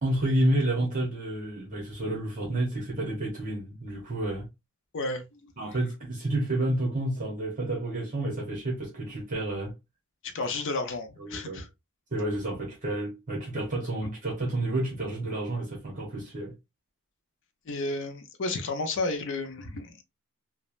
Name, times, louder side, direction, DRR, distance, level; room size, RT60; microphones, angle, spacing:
voice 1, 0.0-4.5 5.6-9.7 11.2-11.6 12.1-16.5, right 1 dB, 35° right, 0.9 m, -30 dB
voice 2, 4.9-5.5 10.2-11.7 17.7-20.0, left 2 dB, 60° left, 0.5 m, -32 dB
3.1 x 2.0 x 2.4 m
head